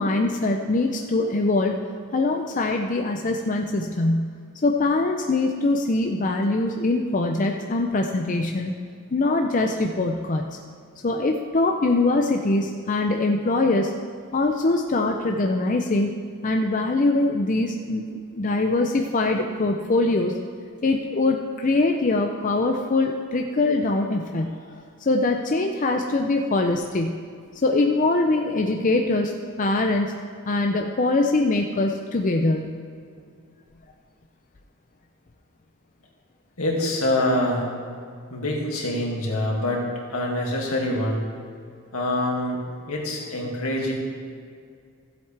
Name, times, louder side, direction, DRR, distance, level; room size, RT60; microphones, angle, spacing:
voice 1, 0.0-1.8 2.1-4.3 4.6-8.7 9.1-10.5 11.0-13.9 14.3-16.1 16.4-20.3 20.8-24.7 25.0-27.2 27.6-29.3 29.6-30.1 30.4-32.8, left 2 dB, 35° left, 3 dB, 0.5 m, -23 dB
voice 2, 36.6-37.7 38.3-41.3 41.9-43.9, left 1 dB, 80° left, -2 dB, 2.2 m, -25 dB
15.5 x 7.9 x 3.4 m, 2.2 s
head